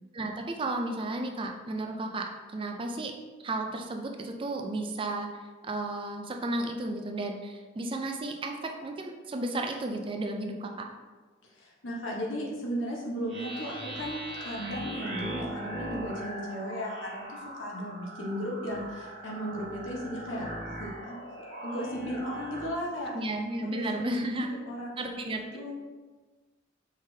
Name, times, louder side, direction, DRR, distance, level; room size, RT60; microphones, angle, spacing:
voice 1, 0.1-3.1 3.4-5.3 5.6-10.9 23.1-24.5 25.0-25.6, right 2 dB, 25° right, 3 dB, 0.4 m, -33 dB
voice 2, 11.5-21.1 21.6-23.1 23.6-25.2 25.5-25.7, equal, 85° left, -3 dB, 1.0 m, -36 dB
sound 1, 13.3-22.8, right 1 dB, 65° right, 1.3 m, -40 dB
4.9 x 3.6 x 2.7 m, 1.3 s
head